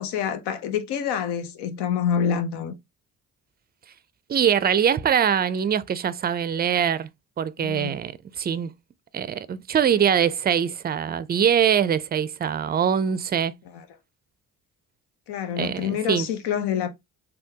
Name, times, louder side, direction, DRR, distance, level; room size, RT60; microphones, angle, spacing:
voice 1, 0.0-2.7 7.6-8.0 13.7-13.9 15.3-16.9, left 8 dB, 80° left, 0.7 m, -27 dB
voice 2, 4.3-7.1 7.4-8.7 9.1-13.5 15.6-16.3, right 8 dB, 25° right, 0.4 m, -23 dB
3.5 x 2.3 x 2.7 m
supercardioid pair, 65°, 39 cm